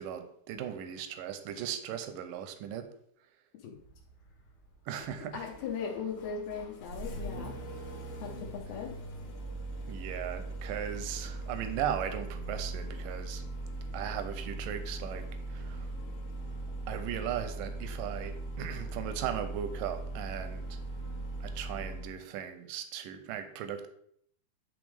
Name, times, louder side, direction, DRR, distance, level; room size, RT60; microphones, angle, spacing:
voice 1, 0.0-2.9 4.9-5.4 9.9-13.5 13.9-15.3 15.5-15.9 16.9-20.8 21.4-23.9, right 9 dB, 80° right, 8 dB, 2.0 m, -37 dB
Engine starting, 3.7-22.1, right 2 dB, 70° left, 2.9 m, -40 dB
voice 2, 5.3-7.6 8.2-8.9, left 6 dB, 85° left, 0 dB, 2.8 m, -38 dB
10.5 x 3.6 x 3.4 m, 0.68 s
omnidirectional pair, 4.3 m